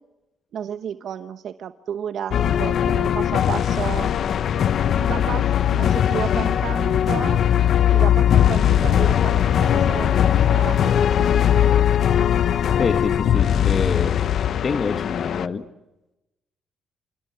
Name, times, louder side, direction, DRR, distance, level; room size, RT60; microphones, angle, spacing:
voice 1, 0.5-4.1 4.8-7.4 7.9-10.8 11.2-11.3, right 9 dB, 65° right, 10 dB, 1.0 m, -32 dB
sound 1, 2.3-15.5, left 10 dB, 65° left, 1.0 m, -19 dB
voice 2, 12.8-14.3 14.6-15.6, left 5 dB, 40° left, 8 dB, 1.4 m, -26 dB
28.5 x 28.0 x 7.0 m, 0.98 s
cardioid pair, 80°, 0 cm